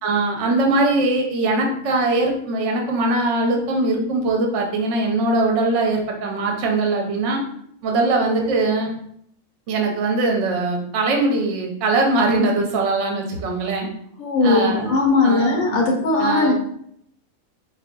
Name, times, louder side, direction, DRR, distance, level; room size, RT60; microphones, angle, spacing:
voice 1, 0.0-7.4 7.8-8.9 9.7-13.9 14.4-14.9 15.2-15.8 16.2-16.5, right 2 dB, 65° right, 1 dB, 0.9 m, -21 dB
voice 2, 14.2-16.5, left 3 dB, 75° left, 0 dB, 1.1 m, -19 dB
3.6 x 2.6 x 2.2 m, 0.69 s
omnidirectional pair, 1.5 m